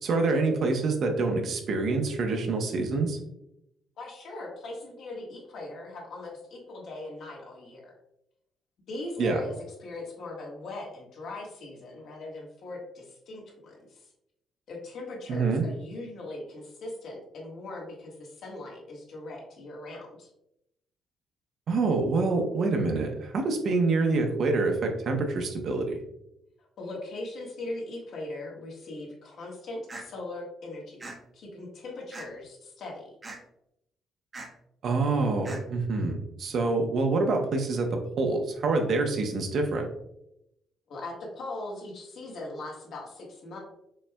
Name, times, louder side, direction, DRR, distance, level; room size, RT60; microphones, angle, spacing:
voice 1, 0.0-3.2 9.2-9.4 15.3-15.6 21.7-26.0 34.8-37.9 38.2-39.9, right 3 dB, 65° right, 3 dB, 0.8 m, -26 dB
voice 2, 4.0-7.9 8.9-9.5 9.8-14.1 14.7-20.3 26.6-33.1 40.9-43.6, left 2 dB, 70° left, -2 dB, 1.4 m, -40 dB
sound 1, 29.9-30.1 31.0-31.2 32.1-32.5 33.2-33.4 34.3-34.5 35.4-35.6, right 2 dB, 30° right, 0.8 m, -40 dB
5.3 x 3.3 x 2.3 m, 0.82 s
cardioid pair, 90°, 0 cm